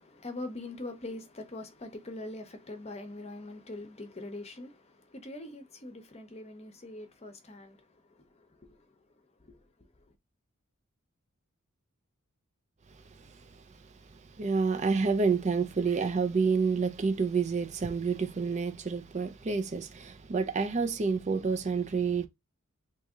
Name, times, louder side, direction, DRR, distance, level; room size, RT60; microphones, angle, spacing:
voice 1, 0.0-8.9 9.4-9.6 10.1-10.2, left 2 dB, 30° left, 0.7 m, -43 dB
voice 2, 13.2-13.5 14.1-22.3, right 5 dB, 30° right, 0.4 m, -29 dB
2.9 x 2.7 x 3.6 m
head